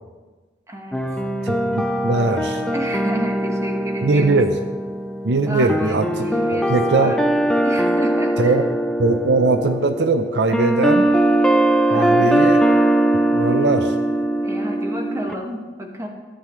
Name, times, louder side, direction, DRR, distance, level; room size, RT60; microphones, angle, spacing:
voice 1, 0.7-1.2 2.7-4.4 5.5-7.2 7.6-8.6 11.9-12.4 14.4-16.1, equal, 20° right, 1 dB, 1.4 m, -31 dB
sound 1, 0.9-15.3, right 1 dB, 5° left, 0.5 m, -21 dB
voice 2, 1.4-2.6 4.0-4.6 5.2-6.1 6.7-7.1 8.4-8.6 9.0-11.1 11.9-12.6 13.3-13.9, right 3 dB, 75° right, 8 dB, 0.6 m, -20 dB
14.0 x 10.0 x 3.2 m, 1.3 s
head